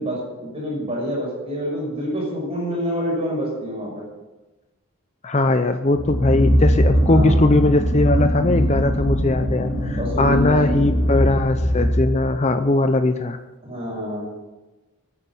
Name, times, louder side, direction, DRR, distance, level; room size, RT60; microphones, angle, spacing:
voice 1, 0.0-4.0 7.0-7.5 10.0-10.4 10.7-10.9 13.6-14.3, equal, 25° right, -3 dB, 6.4 m, -27 dB
voice 2, 5.2-13.4, left 2 dB, 30° left, 8 dB, 0.6 m, -20 dB
sound 1, 5.9-12.4, equal, 50° left, 2.1 m, -21 dB
19.0 x 9.8 x 6.1 m, 1.1 s
head